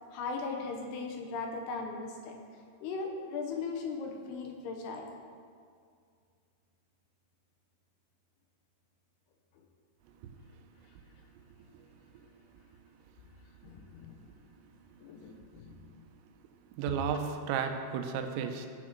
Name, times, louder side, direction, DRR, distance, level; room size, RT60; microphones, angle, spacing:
voice 1, 0.1-2.4 2.8-5.1 13.6-14.2 15.0-16.0, left 4 dB, 75° left, 2 dB, 2.7 m, -38 dB
voice 2, 16.8-18.7, right 7 dB, 85° right, 6 dB, 3.0 m, -33 dB
14.5 x 6.1 x 4.4 m, 2.2 s
omnidirectional pair, 5.1 m